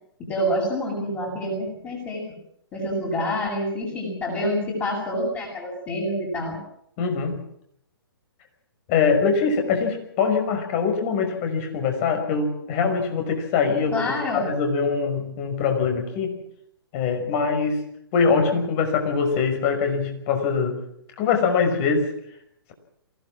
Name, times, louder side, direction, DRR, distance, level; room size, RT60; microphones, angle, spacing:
voice 1, 0.2-2.2 2.7-6.6 13.9-14.5, equal, 20° left, -4 dB, 7.5 m, -27 dB
voice 2, 7.0-7.4 8.9-16.4 16.9-17.8 18.1-20.8 21.2-22.1, left 5 dB, 35° left, 5 dB, 5.8 m, -23 dB
24.0 x 17.5 x 7.5 m, 0.71 s
figure-of-eight pair, 125°, 13 cm